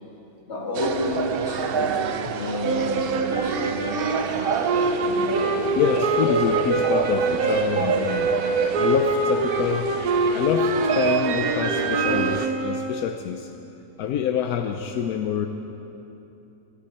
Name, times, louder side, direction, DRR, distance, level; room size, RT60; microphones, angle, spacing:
voice 1, 0.5-4.2 5.1-5.3, left 1 dB, 50° left, -2 dB, 2.5 m, -31 dB
sound 1, 0.7-12.5, right 7 dB, 60° right, 0.6 m, -28 dB
sound 2, 2.6-13.1, right 2 dB, 80° right, 1.6 m, -25 dB
voice 2, 5.8-8.3 8.8-9.9 10.3-13.5 14.0-15.5, left 8 dB, 85° left, 5 dB, 1.1 m, -26 dB
24.5 x 11.5 x 4.3 m, 2.9 s
omnidirectional pair, 1.6 m